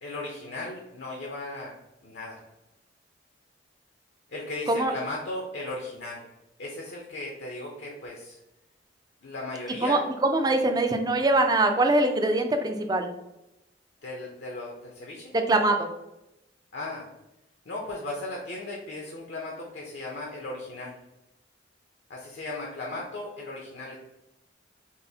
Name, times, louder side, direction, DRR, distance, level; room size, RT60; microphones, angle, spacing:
voice 1, 0.0-1.7 2.0-2.4 4.3-6.3 6.6-8.4 9.2-10.0 14.0-15.3 16.7-17.1 17.7-21.0 22.1-24.0, left 2 dB, 70° left, -2 dB, 0.6 m, -36 dB
voice 2, 9.8-13.1 15.5-15.9, right 2 dB, 20° right, 5 dB, 0.3 m, -23 dB
5.4 x 2.1 x 2.7 m, 0.92 s
head